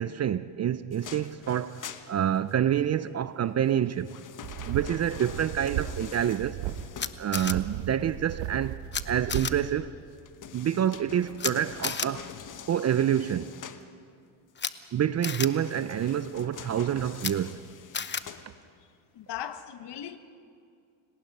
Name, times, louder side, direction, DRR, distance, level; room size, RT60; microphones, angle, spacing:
voice 1, 0.0-4.2 4.7-6.6 7.2-9.9 10.5-12.3 12.7-13.5 14.9-17.6, right 9 dB, 35° right, 0.5 m, -27 dB
sound 1, 0.9-2.8 3.6-7.6 10.1-13.9 15.4-18.9 19.4-19.5, left 8 dB, 40° left, 1.2 m, -46 dB
sound 2, 4.4-6.1 6.4-6.8 7.4-9.6, right 12 dB, 75° right, 1.2 m, -35 dB
Camera, 7.0-7.5 8.9-9.0 9.3-9.5 11.4-11.5 11.8-12.1 14.6-14.7 15.2-15.5 17.2-17.3 17.9-18.2, left 6 dB, 20° left, 0.9 m, -31 dB
voice 2, 19.1-20.2, left 10 dB, 55° left, 1.4 m, -38 dB
29.5 x 19.0 x 5.5 m
supercardioid pair, 90°, 50 cm